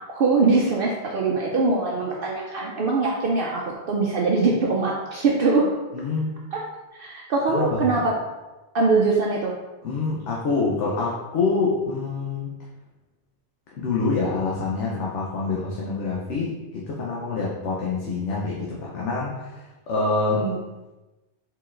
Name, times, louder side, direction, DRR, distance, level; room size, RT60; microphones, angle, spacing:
voice 1, 0.1-5.7 6.5-6.6 6.9-8.1 8.7-9.5 20.3-20.6, right 3 dB, 60° right, -2 dB, 0.7 m, -22 dB
voice 2, 5.9-6.3 7.5-7.8 9.8-12.5 13.8-19.6 19.9-20.4, left 4 dB, 85° left, -4 dB, 1.0 m, -26 dB
4.5 x 3.9 x 2.5 m, 1.1 s
omnidirectional pair, 1.2 m